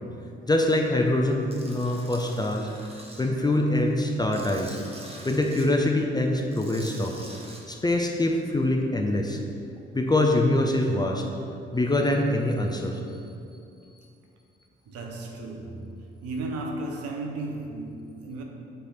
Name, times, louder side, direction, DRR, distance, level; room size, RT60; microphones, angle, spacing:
voice 1, 0.5-2.7 3.2-4.8 5.2-7.2 7.7-9.4 9.9-11.3 11.7-13.0, left 1 dB, 15° left, 0.6 m, -24 dB
Tools, 1.5-3.2 3.7-5.7 6.4-7.6, right 1 dB, 20° right, 1.1 m, -45 dB
voice 2, 14.9-18.4, right 2 dB, 55° right, 0.8 m, -35 dB
7.6 x 3.3 x 4.1 m
figure-of-eight pair, 40°, 29 cm